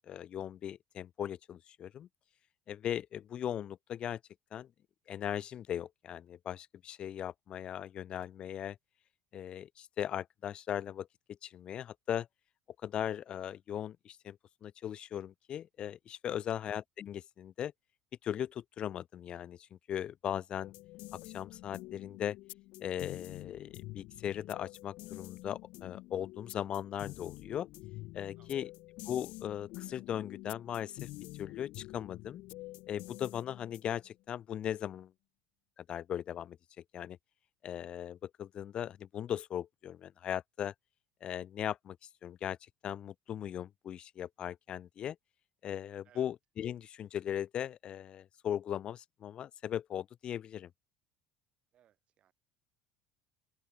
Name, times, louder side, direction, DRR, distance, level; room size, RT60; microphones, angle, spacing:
voice 1, 0.1-2.1 2.7-4.2 4.5-4.7 5.1-8.8 9.3-11.1 11.4-12.3 12.8-17.7 18.2-20.7 21.1-22.4 22.8-27.7 28.1-28.7 29.1-31.1 31.4-32.4 32.9-35.1 35.8-36.6 36.9-37.2 37.6-40.7 41.2-42.0 42.2-42.6 42.8-45.2 45.6-50.7, left 10 dB, 35° left, 0.5 m, -38 dB
sound 1, 20.6-34.1, left 20 dB, 65° left, 1.6 m, -48 dB
voice 2, 28.3-28.7 46.0-46.3 51.7-52.3, right 11 dB, 40° right, 7.6 m, -67 dB
open air
cardioid pair, 140°, 3 cm